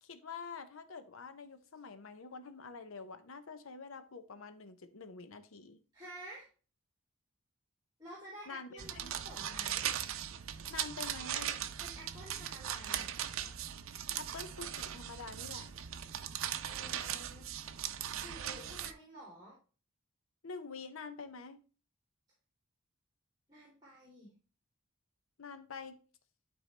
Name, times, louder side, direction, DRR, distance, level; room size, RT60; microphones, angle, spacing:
voice 1, 0.0-5.8 8.5-9.1 10.7-11.6 14.1-15.7 20.4-21.6 25.4-26.0, left 4 dB, 75° left, 0.7 m, -47 dB
voice 2, 5.9-6.5 8.0-9.9 11.8-13.1 16.7-17.5 18.2-19.6 23.5-24.3, right 1 dB, 20° right, 3.0 m, -51 dB
sound 1, 8.8-18.9, right 10 dB, 70° right, 0.6 m, -39 dB
12.0 x 4.5 x 3.3 m
head